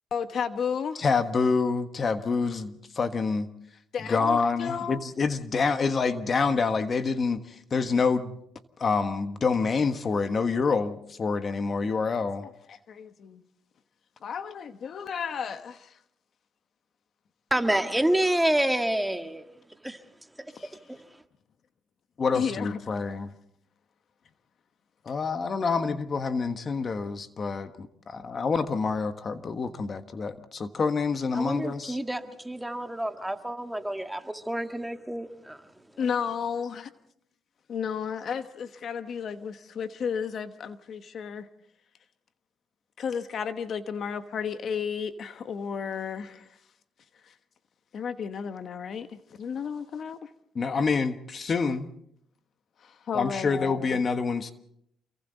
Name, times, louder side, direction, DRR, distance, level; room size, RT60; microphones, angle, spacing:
voice 1, 0.1-1.0 3.9-5.0 12.7-13.4 14.2-16.0 20.5-20.8 22.3-22.8 36.0-36.9 37.7-41.5 43.0-46.5 47.2-47.3 47.9-50.3 52.8-53.9, left 7 dB, 60° left, 1.2 m, -33 dB
voice 2, 1.0-3.5 4.1-8.4 8.8-12.4 22.2-23.3 25.0-32.0 50.5-51.9 53.1-54.5, left 4 dB, 45° left, 1.4 m, -27 dB
voice 3, 17.5-19.4 19.8-20.0 20.4-20.5 20.9-21.0 31.4-35.6, right 1 dB, 5° right, 1.7 m, -28 dB
28.5 x 23.0 x 4.1 m
cardioid pair, 90°, 0 cm